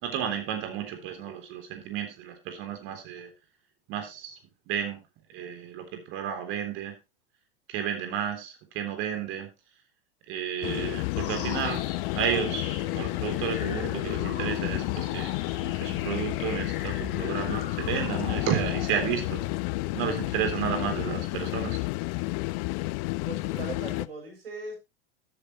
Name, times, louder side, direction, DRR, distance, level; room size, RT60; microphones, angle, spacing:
voice 1, 0.0-3.3 3.9-4.4 4.7-5.0 5.3-6.9 7.7-9.5 10.3-11.8 12.2-15.3 15.8-19.4 19.9-21.8, right 8 dB, 45° right, 6 dB, 3.7 m, -32 dB
sound 1, 10.6-24.1, left 23 dB, 40° left, 0.6 m, -31 dB
sound 2, 11.1-20.6, left 7 dB, 60° left, 2.7 m, -39 dB
voice 2, 23.2-24.8, right 3 dB, 70° right, 1 dB, 7.6 m, -39 dB
13.0 x 9.0 x 3.2 m, 0.25 s
figure-of-eight pair, 85°, 30 cm